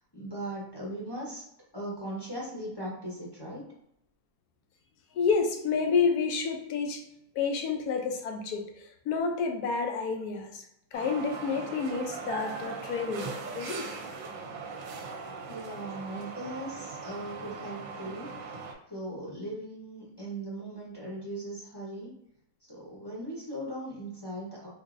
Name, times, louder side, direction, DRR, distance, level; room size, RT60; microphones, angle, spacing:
voice 1, 0.1-1.4 1.7-3.7 15.5-22.1 22.7-24.7, right 1 dB, 20° left, -6 dB, 0.7 m, -39 dB
voice 2, 5.1-7.0 7.4-8.7 9.1-10.6 10.9-13.9, left 5 dB, 85° left, 3 dB, 1.1 m, -29 dB
sound 1, 10.9-18.7, right 4 dB, 70° right, 1.0 m, -39 dB
3.8 x 2.6 x 2.5 m, 0.77 s
omnidirectional pair, 1.6 m